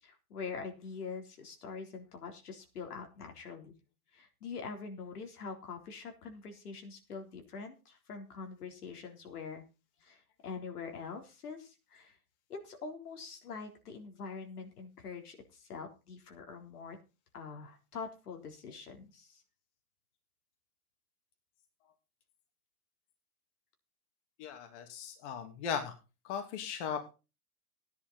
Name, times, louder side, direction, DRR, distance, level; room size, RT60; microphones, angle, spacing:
voice 1, 0.0-3.7 4.1-9.6 10.0-12.2 12.5-17.0 17.3-19.4, left 5 dB, 85° left, 4 dB, 3.8 m, -44 dB
voice 2, 24.4-25.9 26.2-27.1, left 7 dB, 50° left, 5 dB, 2.8 m, -37 dB
14.0 x 10.5 x 4.1 m, 0.30 s
hypercardioid pair, 130°, 44 cm